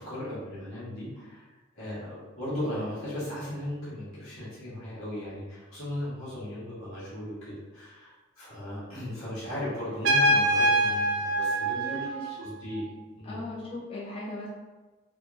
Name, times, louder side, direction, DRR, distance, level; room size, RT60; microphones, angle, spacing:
voice 1, 0.0-12.0 12.4-13.4, left 1 dB, 85° left, -9 dB, 1.4 m, -37 dB
Trumpet, 10.0-12.7, right 1 dB, 70° right, 0.5 m, -25 dB
voice 2, 11.7-12.3 13.2-14.5, left 1 dB, 25° left, -6 dB, 0.3 m, -38 dB
3.5 x 2.0 x 2.4 m, 1.2 s
head